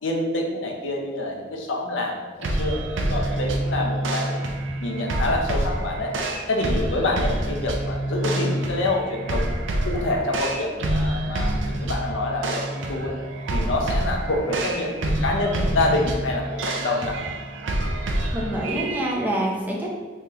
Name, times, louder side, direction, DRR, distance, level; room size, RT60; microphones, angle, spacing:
voice 1, 0.0-4.4 4.8-6.1 6.5-9.5 9.8-13.2 13.5-17.2, left 2 dB, 80° left, 0 dB, 0.6 m, -27 dB
sound 1, 2.4-19.1, right 1 dB, 80° right, 0.5 m, -27 dB
voice 2, 18.3-19.9, right 1 dB, 10° right, -3 dB, 0.5 m, -26 dB
3.4 x 3.1 x 2.9 m, 1.4 s
head